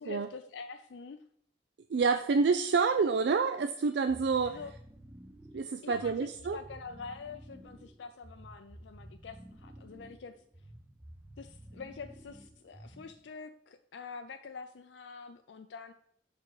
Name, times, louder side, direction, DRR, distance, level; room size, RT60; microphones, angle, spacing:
voice 1, 0.0-1.2 4.4-4.7 5.8-10.3 11.4-15.9, left 5 dB, 90° left, 7 dB, 0.4 m, -46 dB
voice 2, 1.9-4.6 5.5-6.6, right 5 dB, 70° right, 9 dB, 0.4 m, -28 dB
sound 1, 4.1-13.3, right 1 dB, 10° right, 0.6 m, -52 dB
6.8 x 5.9 x 4.7 m, 0.67 s
head